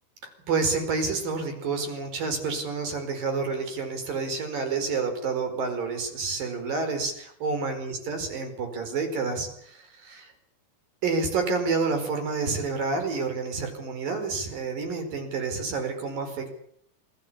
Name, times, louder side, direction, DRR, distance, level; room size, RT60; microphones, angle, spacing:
voice 1, 0.2-10.3 11.0-16.5, right 4 dB, 85° right, 6 dB, 6.5 m, -29 dB
28.0 x 19.5 x 8.7 m, 0.67 s
omnidirectional pair, 3.9 m